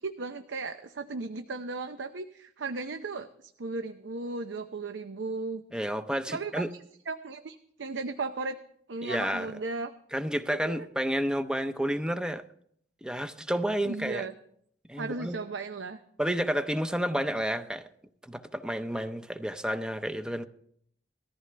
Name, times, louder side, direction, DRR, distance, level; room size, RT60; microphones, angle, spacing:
voice 1, 0.0-5.6 6.3-6.8 7.1-8.6 8.9-9.9 10.5-10.9 13.8-14.3 15.0-16.0, right 3 dB, 90° right, 0.7 m, -36 dB
voice 2, 5.7-6.7 9.0-9.5 10.1-12.4 13.0-14.3 14.9-15.4 16.2-17.9 18.2-20.5, equal, 5° right, 0.6 m, -30 dB
19.0 x 14.0 x 3.4 m
head